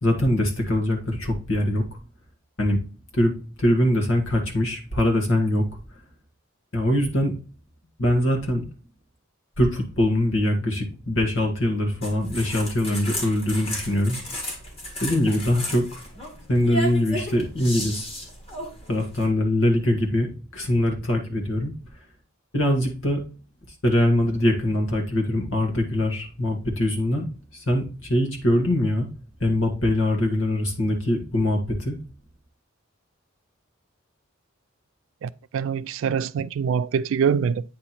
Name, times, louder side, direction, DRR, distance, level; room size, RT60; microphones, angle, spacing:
voice 1, 0.0-1.8 2.6-2.8 3.1-3.3 3.6-5.7 6.7-7.3 8.0-8.7 9.6-14.2 15.0-16.0 16.5-18.1 18.9-21.7 22.5-23.2 23.8-29.1 29.4-32.0, left 1 dB, 65° left, 1.6 m, -23 dB
sound 1, 12.0-19.3, left 1 dB, 30° left, 1.8 m, -34 dB
voice 2, 35.2-37.6, right 7 dB, 70° right, 0.3 m, -24 dB
8.5 x 3.0 x 4.1 m
head